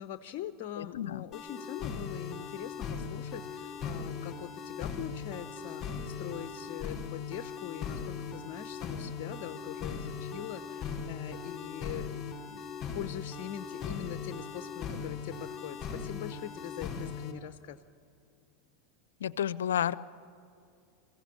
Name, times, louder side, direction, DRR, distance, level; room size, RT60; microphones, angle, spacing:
voice 1, 0.0-12.7 12.9-17.8, left 11 dB, 55° left, 10 dB, 0.7 m, -42 dB
voice 2, 0.8-1.2 19.2-19.9, left 10 dB, 85° left, 18 dB, 0.6 m, -31 dB
sound 1, 1.3-17.3, left 6 dB, 30° left, 5.5 m, -39 dB
23.0 x 15.5 x 8.4 m, 2.5 s
hypercardioid pair, 105°, 0 cm